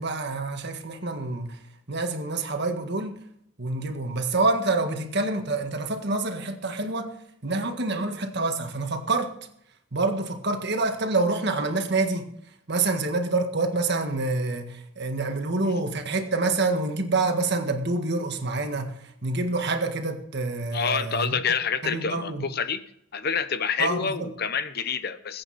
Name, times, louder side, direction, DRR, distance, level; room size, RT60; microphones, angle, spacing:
voice 1, 0.0-1.6 1.9-3.2 3.6-7.1 7.4-9.3 9.9-12.3 12.7-18.9 19.2-21.3 21.8-22.4 23.8-24.3, right 3 dB, 55° right, 1.7 m, -27 dB
voice 2, 20.7-22.8 23.1-25.4, left 6 dB, 50° left, 0.9 m, -27 dB
21.0 x 8.7 x 4.2 m
head